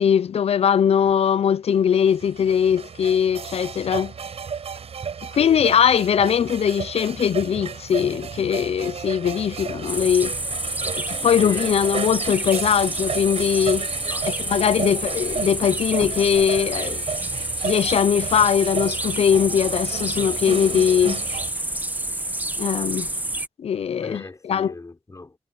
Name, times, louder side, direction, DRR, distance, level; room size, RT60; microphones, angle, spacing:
voice 1, 0.0-4.1 5.3-10.3 11.1-13.9 14.4-17.0 17.6-21.2 22.6-23.1 23.6-24.7, left 8 dB, 85° left, 0.6 m, -21 dB
sound 1, 1.7-21.5, right 6 dB, 85° right, 6.0 m, -33 dB
voice 2, 5.3-5.6 11.4-11.7 13.9-14.5 24.0-25.4, left 2 dB, 30° left, 5.4 m, -38 dB
sound 2, 9.9-23.5, right 1 dB, 15° right, 1.2 m, -29 dB
wide cardioid pair, 80°, 10 cm